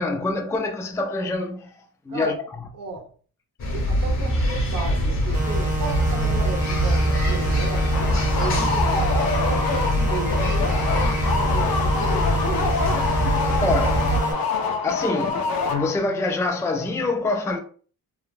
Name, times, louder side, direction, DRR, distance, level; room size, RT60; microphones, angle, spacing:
voice 1, 0.0-1.7 2.1-2.7 13.6-14.3 14.8-17.6, left 3 dB, 10° left, 0.3 m, -26 dB
voice 2, 2.7-3.1 3.7-8.0 8.3-9.7 9.9-12.8, right 3 dB, 65° right, 0.9 m, -34 dB
sound 1, 3.6-14.2, equal, 45° left, 1.0 m, -23 dB
sound 2, 5.3-14.3, equal, 20° right, 0.9 m, -29 dB
sound 3, 7.9-16.2, left 4 dB, 75° left, 0.5 m, -26 dB
3.1 x 2.1 x 2.4 m
cardioid pair, 90°, 36 cm